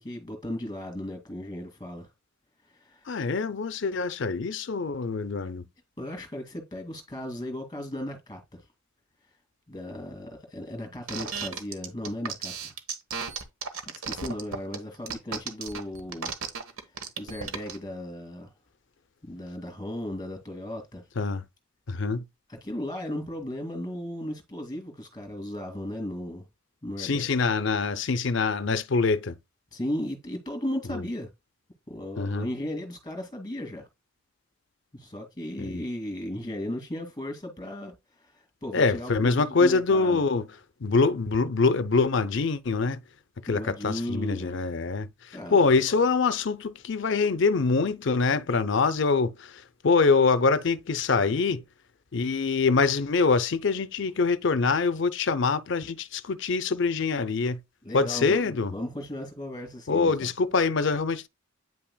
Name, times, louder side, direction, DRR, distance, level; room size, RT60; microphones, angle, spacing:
voice 1, 0.0-2.1 2.7-3.1 6.0-8.6 9.7-12.7 14.0-16.3 17.2-18.5 19.2-21.0 22.5-26.4 26.8-27.3 29.7-31.3 31.9-33.9 34.9-40.2 43.5-44.6 45.3-46.0 57.8-60.3, left 1 dB, 20° left, 2.1 m, -36 dB
voice 2, 3.1-5.6 21.2-21.4 21.9-22.2 27.0-29.3 30.9-31.0 32.2-32.5 35.6-35.8 38.7-40.5 40.8-43.0 43.4-51.6 52.1-57.6 57.9-58.7 59.9-61.3, left 4 dB, 55° left, 0.5 m, -24 dB
sound 1, 11.1-17.8, right 6 dB, 75° right, 1.1 m, -34 dB
9.1 x 5.8 x 2.2 m
head